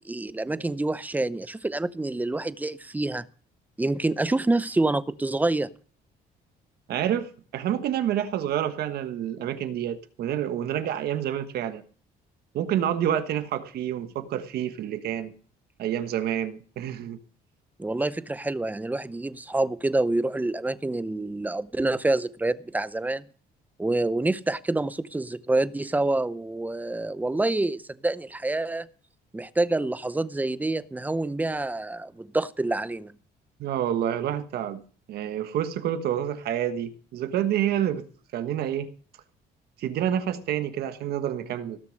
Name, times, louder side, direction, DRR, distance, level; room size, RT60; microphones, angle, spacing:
voice 1, 0.0-3.2 3.8-5.7 17.8-23.2 23.8-28.9 29.3-33.1, right 2 dB, 10° right, 0.7 m, -27 dB
voice 2, 6.9-11.8 12.5-15.3 15.8-17.2 33.6-34.8 35.1-38.1 38.3-38.9 39.8-41.8, right 10 dB, 70° right, 1.3 m, -28 dB
17.5 x 6.8 x 6.4 m
cardioid pair, 110°, 17 cm